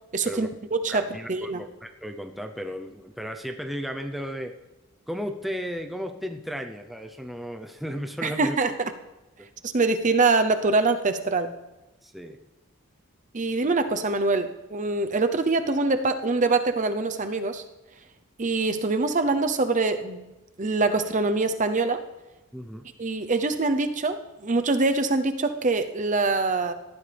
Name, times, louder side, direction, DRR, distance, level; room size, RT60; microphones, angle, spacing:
voice 1, 0.1-1.6 8.2-8.9 9.6-11.5 13.3-17.6 18.4-20.3 20.6-22.0 23.0-26.7, right 3 dB, 35° right, 8 dB, 0.7 m, -24 dB
voice 2, 0.9-4.5 5.1-8.6 12.0-12.4 22.5-22.8, equal, ahead, 4 dB, 0.7 m, -34 dB
19.0 x 14.0 x 3.5 m, 1.0 s
head